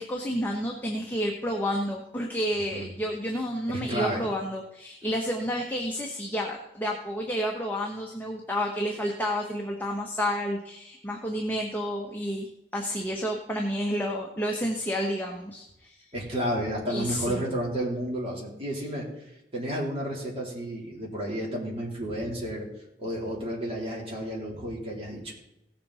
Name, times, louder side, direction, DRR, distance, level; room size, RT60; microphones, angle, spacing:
voice 1, 0.0-16.0 16.9-17.4, equal, 10° left, 0 dB, 1.2 m, -30 dB
voice 2, 3.7-4.2 16.1-19.1 19.5-22.7 23.0-25.3, equal, 35° right, -4 dB, 3.8 m, -31 dB
17.0 x 7.5 x 4.3 m, 0.87 s
head